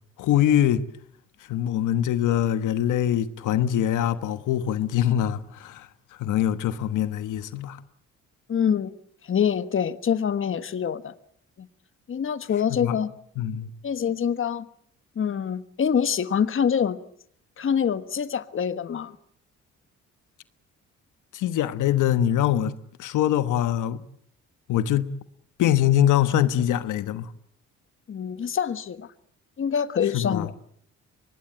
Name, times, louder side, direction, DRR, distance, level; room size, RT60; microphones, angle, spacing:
voice 1, 0.2-0.8 1.5-7.8 12.7-13.0 13.4-13.7 21.3-22.7 23.0-24.0 24.7-25.1 25.6-27.3 30.1-30.5, left 11 dB, 80° left, 1.3 m, -23 dB
voice 2, 8.5-8.9 9.2-11.1 11.6-11.7 12.1-13.1 13.8-14.7 15.1-17.0 17.6-19.1 28.1-29.1 29.6-30.5, left 7 dB, 45° left, 1.3 m, -25 dB
24.0 x 20.0 x 8.8 m
cardioid pair, 90°, 30 cm